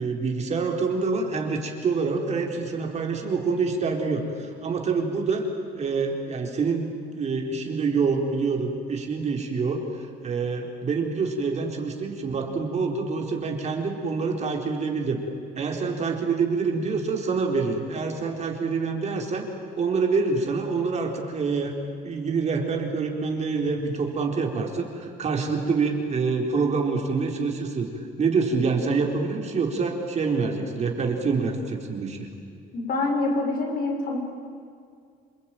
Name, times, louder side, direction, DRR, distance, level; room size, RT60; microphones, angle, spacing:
voice 1, 0.0-5.5 5.7-15.2 15.6-19.5 19.8-21.7 22.0-27.9 28.2-32.3, right 4 dB, 40° right, 2 dB, 4.2 m, -26 dB
voice 2, 32.7-34.2, left 2 dB, 60° left, 2 dB, 6.3 m, -26 dB
28.0 x 21.5 x 9.3 m, 2.3 s
cardioid pair, 110°, 17 cm